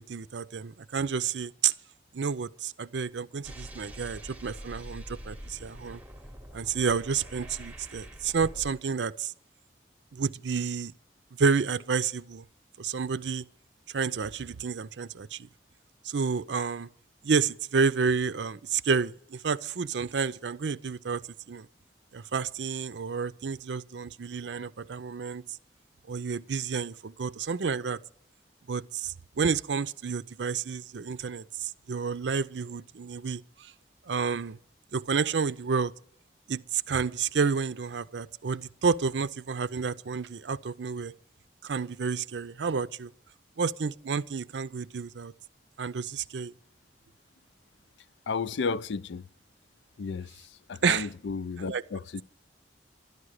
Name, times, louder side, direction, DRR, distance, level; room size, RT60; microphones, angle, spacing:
voice 1, 0.0-1.7 2.1-6.0 6.5-9.3 10.1-10.9 11.4-12.4 12.8-13.4 13.9-15.5 16.0-16.9 17.2-21.7 22.1-25.6 26.1-28.0 28.7-33.7 34.0-34.6 34.9-35.9 36.5-41.1 41.6-43.1 43.6-45.3 45.8-46.5 50.8-51.1 51.6-51.8, right 5 dB, 80° right, 0.5 m, -30 dB
sound 1, 3.4-8.7, equal, 10° right, 0.8 m, -44 dB
voice 2, 48.3-49.3 50.0-52.2, left 4 dB, 80° left, 0.4 m, -33 dB
12.5 x 11.0 x 6.4 m
head